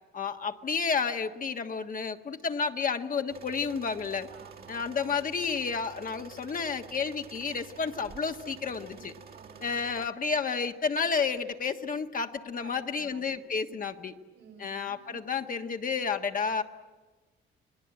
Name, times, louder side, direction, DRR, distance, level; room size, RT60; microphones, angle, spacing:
voice 1, 0.1-4.3 4.7-9.1 9.6-14.1 14.6-16.6, left 5 dB, 45° left, 6 dB, 1.5 m, -31 dB
sound 1, 3.3-10.1, right 6 dB, 50° right, 1.9 m, -49 dB
voice 2, 4.3-5.0 8.6-9.9 12.5-13.8 14.3-15.4, right 6 dB, 75° right, 7 dB, 4.4 m, -54 dB
29.5 x 20.5 x 8.9 m, 1.3 s
cardioid pair, 90°, 20 cm